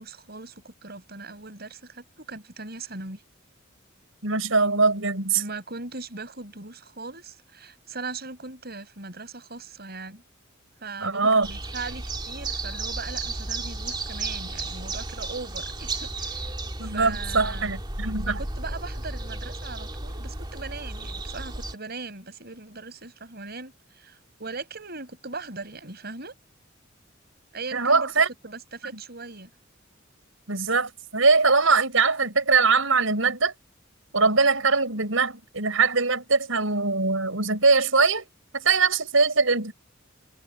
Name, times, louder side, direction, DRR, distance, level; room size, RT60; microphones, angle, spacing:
voice 1, 0.0-3.2 5.3-10.2 10.8-17.7 18.2-26.3 27.5-28.1 28.4-29.5, right 3 dB, 50° right, 6.2 m, -39 dB
voice 2, 4.2-5.4 11.0-11.5 16.8-18.4 27.7-28.3 30.5-33.5 34.1-38.2 38.5-39.7, right 4 dB, 80° right, 6.0 m, -22 dB
sound 1, 11.4-21.7, right 2 dB, 25° right, 2.3 m, -33 dB
head